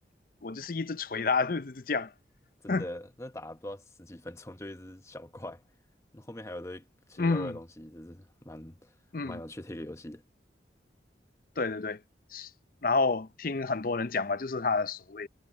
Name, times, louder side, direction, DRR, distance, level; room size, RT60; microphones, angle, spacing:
voice 1, 0.4-2.1 2.7-2.8 7.2-7.5 9.1-9.4 11.6-12.0 12.3-12.5 12.8-15.3, left 4 dB, 50° left, 0.6 m, -29 dB
voice 2, 2.6-5.6 6.1-8.9 9.2-10.2, left 1 dB, 15° left, 0.9 m, -42 dB
head